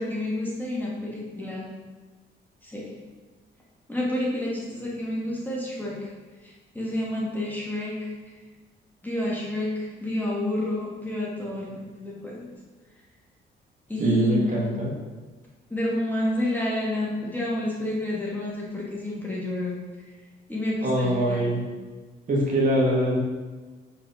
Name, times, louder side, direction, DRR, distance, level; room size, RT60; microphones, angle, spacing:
voice 1, 0.0-1.7 2.6-2.9 3.9-6.1 6.4-8.1 9.0-12.5 13.9-14.7 15.7-19.8 20.5-21.5, left 1 dB, 10° left, -6 dB, 2.3 m, -29 dB
voice 2, 14.0-14.9 20.8-21.6 22.3-23.2, right 1 dB, 40° right, -4 dB, 2.2 m, -23 dB
5.9 x 4.8 x 5.8 m, 1.3 s
cardioid pair, 90°, 20 cm